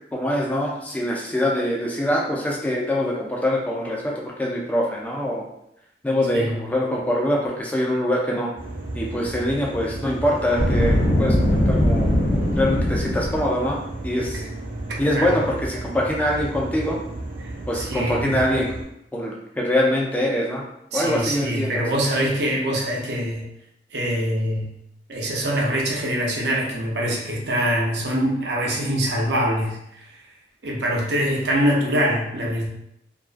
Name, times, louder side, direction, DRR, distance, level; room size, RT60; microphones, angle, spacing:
voice 1, 0.1-5.4 6.0-8.5 8.9-12.1 12.6-13.8 14.0-14.4 15.0-17.0 17.7-18.7 19.1-20.7 20.9-21.8, left 1 dB, 10° left, -3 dB, 0.3 m, -24 dB
sound 1, 8.6-18.8, right 2 dB, 30° right, 0.8 m, -33 dB
Boom, 10.5-13.6, left 1 dB, 60° left, 1.0 m, -20 dB
voice 2, 14.1-14.5 15.1-15.4 17.7-18.4 20.9-23.5 23.9-24.7 25.1-30.0 30.6-32.7, equal, 70° right, -2 dB, 0.6 m, -24 dB
2.3 x 2.2 x 2.4 m, 0.78 s
head